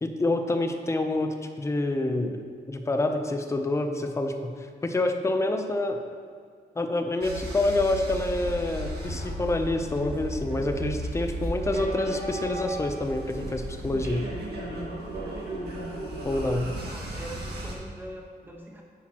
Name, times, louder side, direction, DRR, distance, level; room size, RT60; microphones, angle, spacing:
voice 1, 0.0-4.5 4.8-6.0 6.8-14.3 16.2-16.8, left 2 dB, 15° left, 6 dB, 0.6 m, -27 dB
sound 1, 7.2-17.7, right 1 dB, 70° right, 1.9 m, -35 dB
voice 2, 16.4-18.8, right 1 dB, 10° right, 0 dB, 1.1 m, -43 dB
10.0 x 8.8 x 3.0 m, 2.1 s
wide cardioid pair, 160°, 17 cm